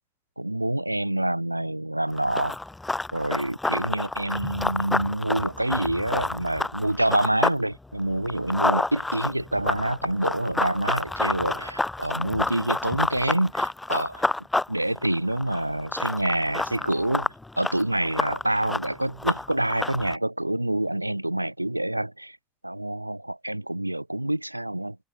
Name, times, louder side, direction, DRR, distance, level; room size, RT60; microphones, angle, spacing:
voice 1, 0.4-2.6 3.1-14.2 14.7-22.4 22.6-25.0, right 1 dB, 90° right, 1.3 m, -27 dB
Run, 2.1-7.6 7.9-20.2, left 2 dB, 10° left, 2.9 m, -29 dB
figure-of-eight pair, 70°, 0 cm